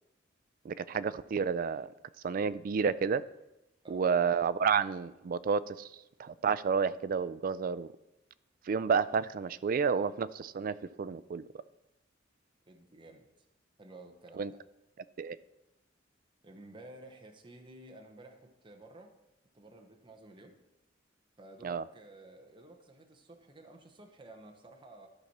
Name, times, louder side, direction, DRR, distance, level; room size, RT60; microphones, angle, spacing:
voice 1, 0.6-1.9 2.2-3.2 3.9-5.9 6.2-7.9 8.7-11.4 14.4-14.5 15.2-15.4 21.6-21.8, right 6 dB, 45° right, 17 dB, 0.3 m, -30 dB
voice 2, 12.7-13.3 13.8-14.6 16.4-19.1 19.5-20.6 21.4-25.1, right 2 dB, 25° right, 3 dB, 0.8 m, -53 dB
13.0 x 6.0 x 4.2 m, 0.94 s
head